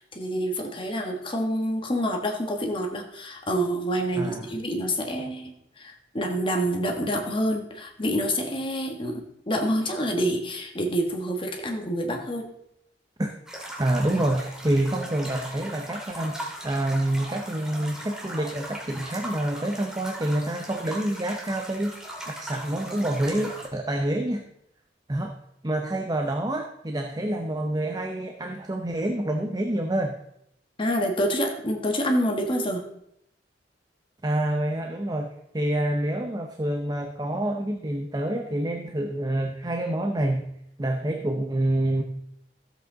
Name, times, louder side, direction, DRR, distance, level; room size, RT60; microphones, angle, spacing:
voice 1, 0.0-12.5 30.8-32.8, equal, 30° left, 2 dB, 1.6 m, -27 dB
voice 2, 4.2-4.5 13.2-16.4 16.6-21.9 22.3-24.4 25.1-25.3 25.6-30.2 34.2-40.5 40.8-42.0, right 1 dB, 20° right, 4 dB, 0.7 m, -27 dB
sound 1, 13.5-23.7, right 1 dB, 5° right, 2.1 m, -39 dB
14.0 x 7.9 x 3.9 m, 0.76 s
head